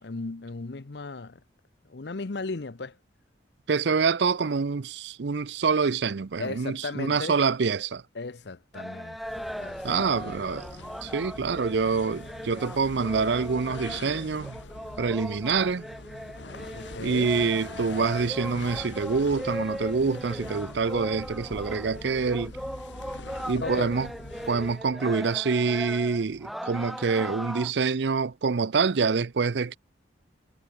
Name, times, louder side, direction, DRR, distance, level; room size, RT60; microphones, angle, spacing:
voice 1, 0.0-1.4 1.9-3.0 6.4-7.4 8.1-9.8 10.1-10.3 16.7-17.3 23.6-23.9, left 3 dB, 65° left, 0.8 m, -36 dB
voice 2, 3.7-8.0 9.8-10.7 11.0-14.6 15.0-15.8 17.0-22.5 23.4-24.1 24.5-29.8, right 5 dB, 70° right, 0.5 m, -26 dB
sound 1, 8.7-27.7, equal, ahead, 0.5 m, -38 dB
sound 2, 9.1-25.0, left 2 dB, 80° left, 2.1 m, -43 dB
head